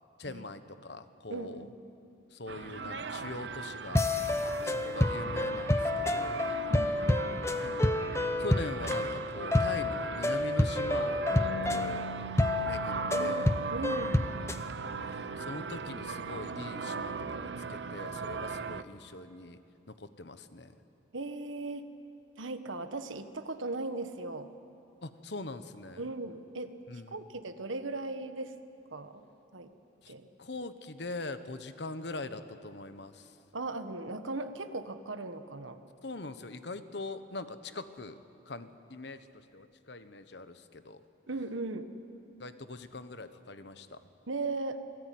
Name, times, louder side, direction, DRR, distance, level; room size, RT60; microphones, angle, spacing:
voice 1, 0.2-1.7 2.3-4.1 4.4-6.5 7.6-7.9 8.4-12.1 12.6-13.5 15.0-19.6 19.9-20.7 25.0-26.1 26.9-27.3 30.0-30.1 30.4-33.4 36.0-38.2 38.5-41.0 42.4-44.0, left 2 dB, 60° left, 11 dB, 1.2 m, -42 dB
voice 2, 1.3-1.7 6.7-7.5 13.1-13.4 13.7-14.2 21.1-21.9 22.4-24.5 26.0-26.7 27.1-28.5 28.9-29.2 29.5-29.7 30.1-30.3 33.5-35.8 41.3-41.9 44.3-44.8, right 2 dB, 90° right, 9 dB, 1.5 m, -38 dB
sound 1, 2.5-18.8, right 5 dB, 65° right, 0.8 m, -39 dB
sound 2, 3.9-14.6, left 2 dB, 15° left, 0.8 m, -29 dB
Bass guitar, 11.3-17.6, right 2 dB, 75° left, 4.2 m, -45 dB
27.0 x 20.0 x 9.4 m, 2.6 s
head